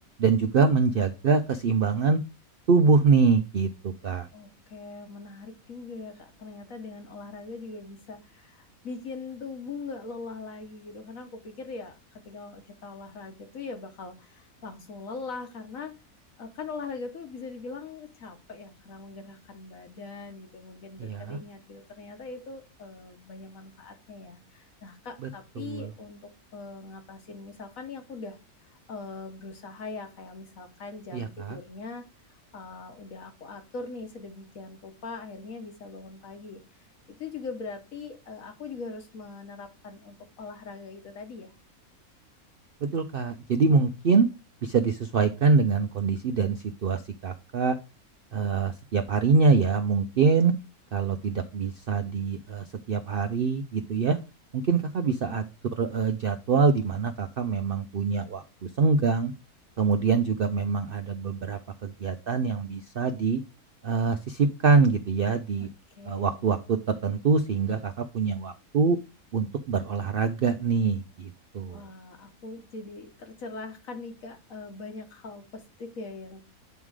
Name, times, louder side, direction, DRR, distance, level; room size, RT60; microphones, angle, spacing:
voice 1, 0.2-2.2 2.7-4.3 21.0-21.4 25.6-25.9 31.1-31.6 42.8-44.3 44.6-47.8 48.3-50.5 50.9-54.2 54.5-55.4 55.8-59.3 59.8-63.4 63.8-65.7 66.1-69.0 69.3-71.8, right 4 dB, 60° right, 7 dB, 0.5 m, -24 dB
voice 2, 4.3-16.0 16.4-28.4 28.9-32.1 32.5-36.6 37.1-41.5 55.2-55.5 65.6-65.7 66.0-66.5 71.7-76.4, left 4 dB, 65° left, 5 dB, 1.4 m, -41 dB
8.1 x 3.7 x 4.7 m, 0.29 s
omnidirectional pair, 1.6 m